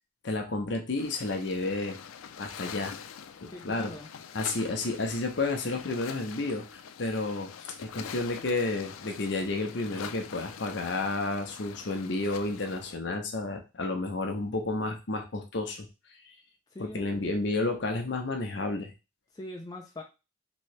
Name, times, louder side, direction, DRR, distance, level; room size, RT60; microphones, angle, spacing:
voice 1, 0.2-2.0 2.4-2.9 3.4-3.9 4.3-15.9 16.8-18.9, left 2 dB, 60° left, 4 dB, 0.7 m, -31 dB
sound 1, 1.0-12.9, left 7 dB, 90° left, 0.4 m, -44 dB
voice 2, 3.5-4.1 16.7-17.3 19.3-20.0, left 1 dB, 20° left, 0 dB, 0.3 m, -42 dB
3.1 x 2.7 x 3.1 m, 0.28 s
head